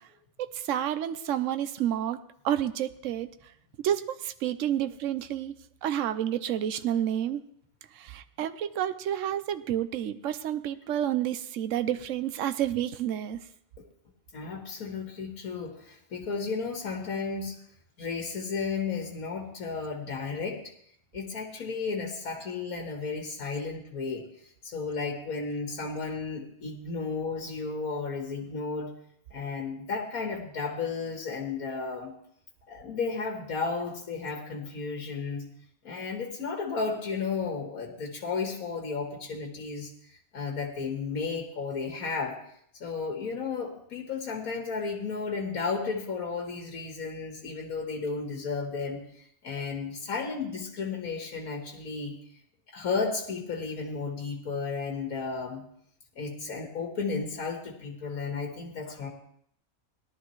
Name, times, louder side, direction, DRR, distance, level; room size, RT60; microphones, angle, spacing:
voice 1, 0.4-2.2 2.4-3.3 3.8-5.5 5.8-7.4 8.0-13.4, right 11 dB, 65° right, 10 dB, 1.0 m, -29 dB
voice 2, 14.3-17.6 18.0-20.6 21.1-28.9 29.3-32.1 32.7-35.5 35.8-39.9 40.3-42.4 42.8-52.2 52.7-55.6 56.2-59.1, left 4 dB, 85° left, 2 dB, 1.9 m, -33 dB
18.0 x 12.0 x 3.1 m, 0.68 s
omnidirectional pair, 1.5 m